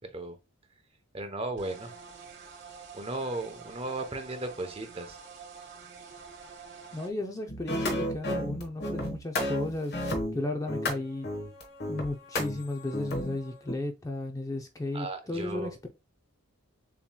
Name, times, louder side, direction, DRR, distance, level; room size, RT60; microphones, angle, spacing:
voice 1, 0.0-0.4 1.1-1.9 2.9-5.2 14.9-15.7, right 2 dB, 25° right, 0.8 m, -35 dB
sound 1, 1.6-7.1, right 5 dB, 55° right, 1.1 m, -47 dB
voice 2, 6.9-10.0 10.3-11.3 11.9-15.9, left 2 dB, 15° left, 0.4 m, -34 dB
sound 2, 7.5-13.7, left 1 dB, 50° left, 1.2 m, -32 dB
7.1 x 3.0 x 2.2 m
head